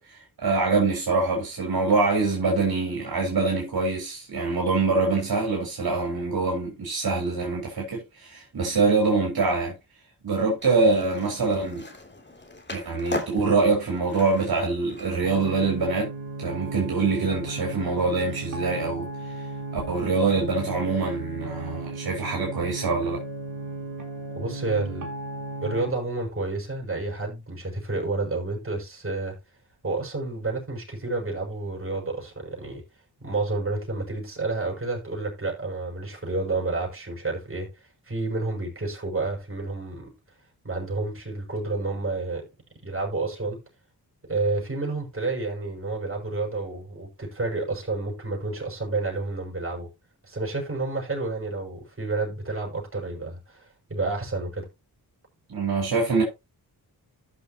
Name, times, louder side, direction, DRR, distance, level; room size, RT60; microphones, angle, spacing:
voice 1, 0.0-9.7 10.2-11.8 12.7-16.1 16.4-19.1 19.7-23.2 55.5-56.2, right 3 dB, 75° right, 4.3 m, -24 dB
Skateboard, 10.6-15.8, left 2 dB, 30° left, 3.1 m, -39 dB
sound 1, 15.2-25.9, right 3 dB, 50° right, 3.8 m, -35 dB
voice 2, 24.3-25.1 25.6-29.4 29.8-32.8 33.2-37.7 38.1-40.1 40.6-42.4 42.8-43.6 44.3-49.9 50.3-54.6, right 3 dB, 35° right, 6.5 m, -30 dB
14.0 x 6.9 x 2.9 m
cardioid pair, 65°, 38 cm